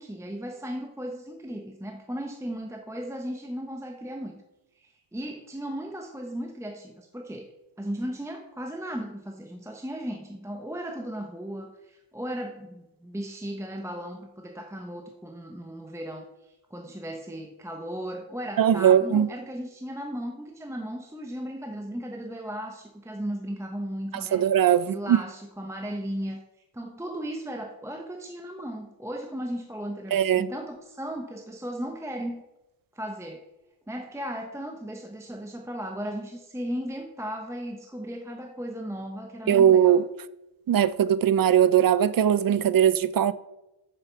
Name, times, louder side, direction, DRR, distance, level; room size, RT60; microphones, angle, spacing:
voice 1, 0.0-4.4 4.7-7.5 7.8-24.4 24.9-26.4 26.7-32.4 32.9-33.4 33.9-40.0, equal, 5° right, 0.8 m, -36 dB
voice 2, 18.6-19.3 24.3-25.2 30.1-30.5 39.5-40.0 40.7-43.3, right 9 dB, 45° right, 0.5 m, -20 dB
7.5 x 6.8 x 7.1 m
wide cardioid pair, 115°, 48 cm